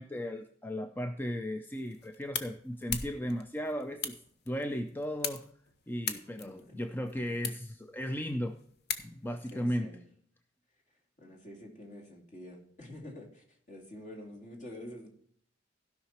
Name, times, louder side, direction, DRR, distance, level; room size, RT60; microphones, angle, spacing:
voice 1, 0.0-4.2 4.5-5.5 5.9-8.6 9.0-9.9, equal, 10° left, 7 dB, 0.5 m, -36 dB
sound 1, 1.7-9.5, left 7 dB, 60° left, 1.0 m, -41 dB
voice 2, 9.5-10.0 11.2-15.1, left 1 dB, 40° left, 2 dB, 2.6 m, -47 dB
16.0 x 5.8 x 4.3 m, 0.63 s
head